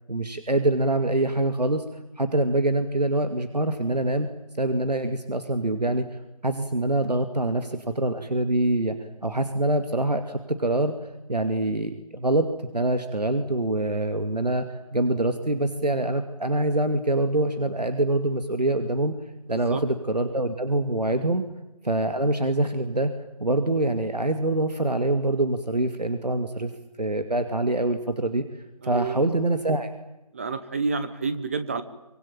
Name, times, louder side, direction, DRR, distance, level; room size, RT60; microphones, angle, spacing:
voice 1, 0.1-1.8 2.2-4.3 4.6-6.1 6.4-9.0 9.2-10.9 11.3-19.1 19.5-21.4 21.8-23.1 23.4-26.7 27.0-28.4 28.8-29.9, right 2 dB, 85° right, 8 dB, 2.5 m, -25 dB
voice 2, 19.5-19.8 28.8-29.2 30.3-31.8, right 4 dB, 20° right, 11 dB, 1.0 m, -29 dB
25.0 x 24.0 x 8.9 m, 0.95 s
figure-of-eight pair, 160°, 20 cm